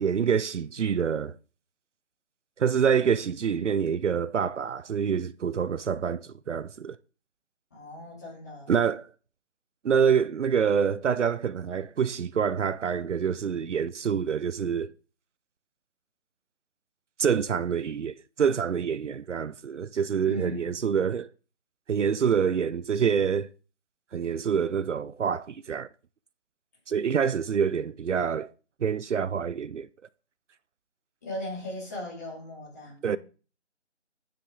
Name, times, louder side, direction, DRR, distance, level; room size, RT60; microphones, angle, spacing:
voice 1, 0.0-1.3 2.6-7.0 8.7-9.1 9.8-14.9 17.2-21.3 21.9-23.5 24.1-25.9 26.9-28.5 28.8-29.9 33.0-33.2, right 7 dB, 75° right, 0.5 m, -26 dB
voice 2, 7.7-8.8 20.3-20.9 31.2-33.2, left 1 dB, 15° left, 2.7 m, -38 dB
9.5 x 6.8 x 3.7 m
figure-of-eight pair, 175°, 36 cm